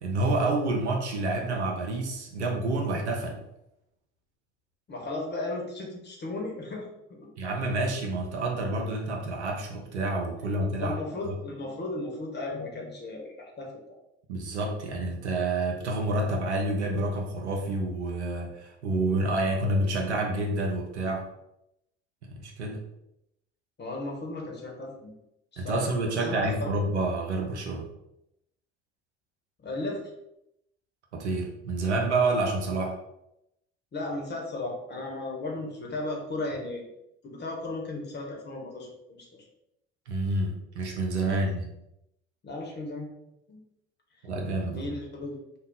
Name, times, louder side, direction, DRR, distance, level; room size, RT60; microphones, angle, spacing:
voice 1, 0.0-3.4 7.4-11.0 11.2-11.3 14.3-21.2 22.3-22.8 25.6-27.9 31.1-32.9 40.1-41.7 44.2-45.0, right 2 dB, 90° right, 1 dB, 0.6 m, -28 dB
voice 2, 4.9-6.9 10.8-13.7 23.8-25.1 25.5-25.8 26.2-26.7 29.6-30.1 33.9-36.8 37.2-39.2 41.3-41.4 42.4-43.1 43.5-43.6 44.6-45.4, left 2 dB, 30° left, 0 dB, 1.1 m, -35 dB
2.6 x 2.3 x 3.6 m, 0.83 s
figure-of-eight pair, 60°, 33 cm